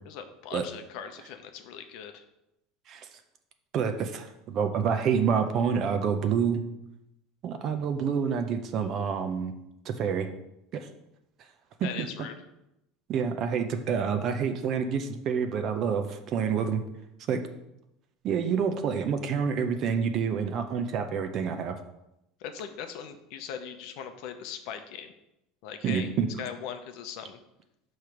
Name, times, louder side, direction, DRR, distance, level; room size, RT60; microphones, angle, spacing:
voice 1, 0.0-2.2 11.8-12.3 22.4-25.1 25.6-26.1 26.4-27.4, left 8 dB, 55° left, 8 dB, 0.7 m, -40 dB
voice 2, 3.7-6.6 7.4-9.5 9.9-10.3 11.8-12.1 13.1-16.8 17.3-17.4 18.2-21.7 25.8-26.3, right 6 dB, 35° right, 7 dB, 0.6 m, -28 dB
6.7 x 3.2 x 5.8 m, 0.87 s
cardioid pair, 170°, 0 cm